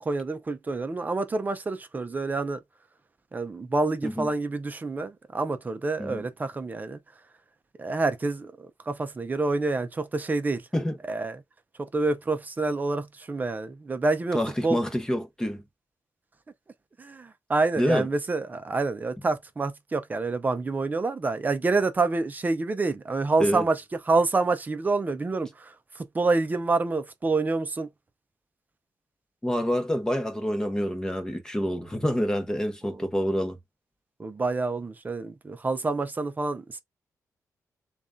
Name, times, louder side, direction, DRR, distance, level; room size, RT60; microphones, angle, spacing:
voice 1, 0.0-2.6 3.3-7.0 7.8-10.7 11.1-11.4 11.8-14.8 17.0-23.8 24.1-27.9 32.8-33.0 34.2-36.8, right 3 dB, 25° right, 0.6 m, -27 dB
voice 2, 14.3-15.6 17.8-18.1 23.4-23.6 29.4-33.6, equal, 10° left, 1.0 m, -27 dB
6.8 x 2.4 x 2.6 m
wide cardioid pair, 125°, 6 cm